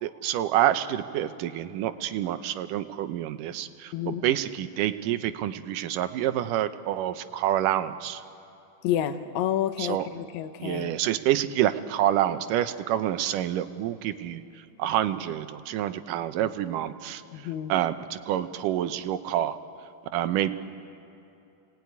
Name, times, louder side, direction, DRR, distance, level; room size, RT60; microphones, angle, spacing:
voice 1, 0.0-8.2 9.8-10.0 10.6-17.2 17.7-19.6 20.1-20.5, right 12 dB, 85° right, 10 dB, 2.5 m, -27 dB
voice 2, 3.9-4.2 8.8-11.0 17.3-17.7, left 11 dB, 70° left, 8 dB, 2.0 m, -29 dB
29.5 x 18.5 x 9.4 m, 2.8 s
omnidirectional pair, 3.7 m